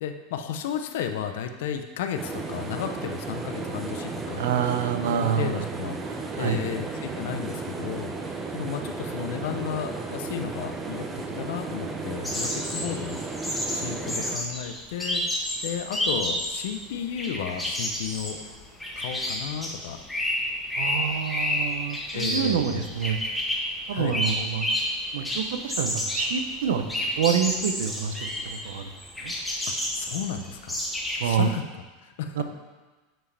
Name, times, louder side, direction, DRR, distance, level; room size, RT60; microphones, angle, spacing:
voice 1, 0.0-4.5 5.2-6.0 6.4-13.2 13.5-15.2 15.6-18.4 19.0-20.0 22.1-22.9 23.9-24.2 29.8-30.8 31.2-31.6 32.0-32.4, left 8 dB, 75° left, 7 dB, 0.6 m, -33 dB
sound 1, 2.2-14.4, right 3 dB, 20° right, 0.7 m, -34 dB
voice 2, 4.4-5.6 6.3-6.6 20.8-23.2 23.9-24.7 25.1-26.8 27.2-28.9 29.2-29.3 31.2-31.5 32.4-32.5, right 8 dB, 85° right, 8 dB, 0.6 m, -27 dB
sound 2, 12.2-16.7 17.0-25.0 25.2-31.3, left 1 dB, 5° left, 1.3 m, -30 dB
7.5 x 4.9 x 3.3 m, 1.2 s
supercardioid pair, 125°, 0 cm